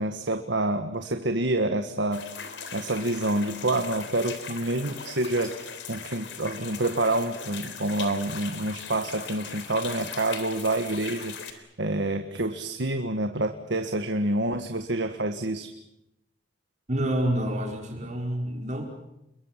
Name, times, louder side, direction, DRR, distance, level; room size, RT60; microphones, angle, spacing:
voice 1, 0.0-2.2 2.7-15.7, right 2 dB, 80° right, 7 dB, 1.7 m, -28 dB
sound 1, 2.1-11.5, left 6 dB, 85° left, 3.7 m, -39 dB
voice 2, 16.9-18.9, right 1 dB, 40° right, 2 dB, 4.9 m, -28 dB
29.5 x 22.5 x 7.5 m, 0.86 s
head